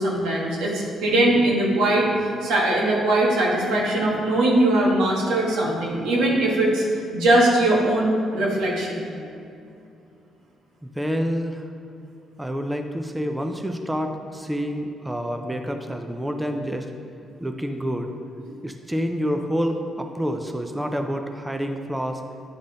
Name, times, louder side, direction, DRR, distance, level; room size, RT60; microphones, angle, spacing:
voice 1, 0.0-6.8 7.1-9.0, right 1 dB, 90° right, -3 dB, 1.4 m, -21 dB
voice 2, 10.8-11.7 12.4-16.9 17.4-18.1 18.6-22.2, equal, 10° right, 4 dB, 0.5 m, -28 dB
9.7 x 3.8 x 3.8 m, 2.5 s
cardioid pair, 90°, 0 cm